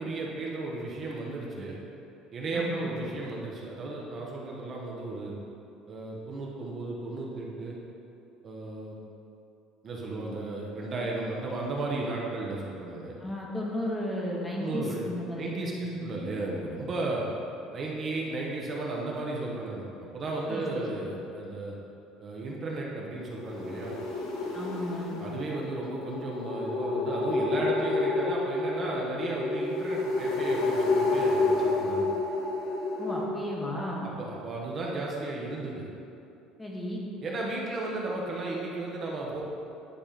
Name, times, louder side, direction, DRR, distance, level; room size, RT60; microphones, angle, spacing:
voice 1, 0.0-1.8 2.3-5.3 5.9-7.8 8.4-9.0 9.8-13.2 14.6-15.0 15.3-17.2 17.7-19.9 20.1-21.7 22.2-24.0 25.2-32.1 34.0-35.8 37.2-39.4, right 2 dB, 30° right, -3 dB, 1.0 m, -34 dB
voice 2, 2.5-2.9 13.2-16.0 20.5-20.9 24.5-25.2 33.0-34.1 36.6-37.0, left 1 dB, 10° left, -3 dB, 1.1 m, -34 dB
sound 1, 23.3-33.2, left 3 dB, 80° left, 1.4 m, -29 dB
10.0 x 3.5 x 5.1 m, 2.7 s
cardioid pair, 155°, 0 cm